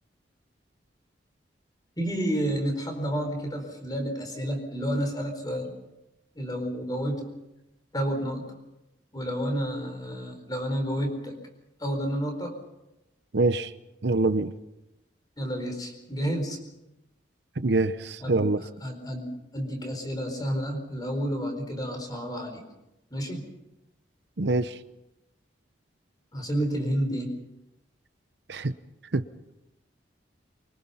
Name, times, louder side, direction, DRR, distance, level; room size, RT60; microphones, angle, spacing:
voice 1, 2.0-5.7 6.3-7.3 7.9-8.5 9.1-11.4 11.8-12.6 15.4-16.6 18.2-18.4 18.8-19.3 19.5-22.6 23.1-23.4 26.3-27.3, equal, 20° left, 5 dB, 4.4 m, -30 dB
voice 2, 13.3-13.7 14.0-14.5 17.6-18.6 24.4-24.8 28.5-28.7 29.1-29.2, right 2 dB, 65° right, 12 dB, 0.8 m, -24 dB
24.5 x 24.0 x 5.7 m, 0.92 s
head